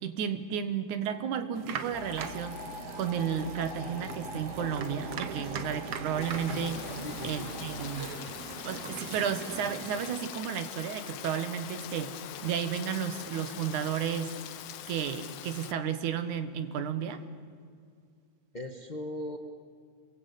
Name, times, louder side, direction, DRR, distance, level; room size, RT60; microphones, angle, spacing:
voice 1, 0.0-2.6 3.0-6.8 7.2-8.1 8.7-14.3 14.9-17.2, right 8 dB, 75° right, 10 dB, 2.8 m, -33 dB
sound 1, 1.5-10.1, right 7 dB, 60° right, 2.0 m, -41 dB
sound 2, 1.9-8.0, left 1 dB, 30° right, 4.4 m, -43 dB
Rain, 6.2-15.7, left 11 dB, 75° left, 2.2 m, -43 dB
voice 2, 7.0-7.7 18.5-19.4, left 1 dB, 50° left, 5 dB, 0.5 m, -39 dB
27.5 x 23.0 x 8.5 m, 2.2 s
omnidirectional pair, 3.5 m